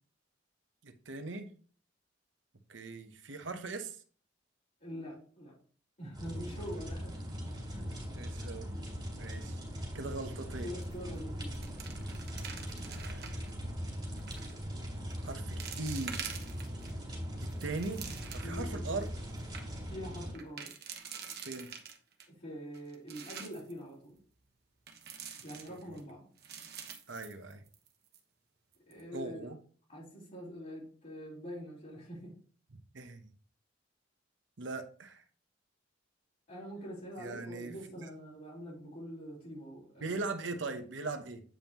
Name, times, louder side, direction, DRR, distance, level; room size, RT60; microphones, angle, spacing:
voice 1, 0.8-1.5 2.7-4.0 8.2-8.7 9.2-9.6 9.9-10.7 12.3-12.5 12.9-13.6 15.2-16.2 17.4-19.0 21.4-21.7 25.7-26.0 27.1-27.6 29.1-29.6 32.9-33.3 34.6-35.2 37.2-38.0 40.0-41.4, right 3 dB, 80° right, 0.9 m, -40 dB
voice 2, 4.8-5.6 6.0-7.3 7.7-7.9 10.6-11.7 18.4-19.0 19.9-20.7 22.3-24.2 25.4-26.3 28.9-29.5 29.9-32.3 36.5-40.2, equal, 45° left, 3.9 m, -44 dB
sound 1, 6.1-20.3, equal, 25° right, 3.7 m, -40 dB
sound 2, 10.8-11.2 11.4-13.5 14.2-14.5 15.1-15.2 15.6-16.9 17.4-18.7 19.1-19.2 19.4-19.6 20.3-22.3 22.7-23.7 24.9-26.0 26.4-27.9 28.1-28.2 28.7-29.0, right 7 dB, 60° right, 1.2 m, -46 dB
8.8 x 5.4 x 2.9 m
head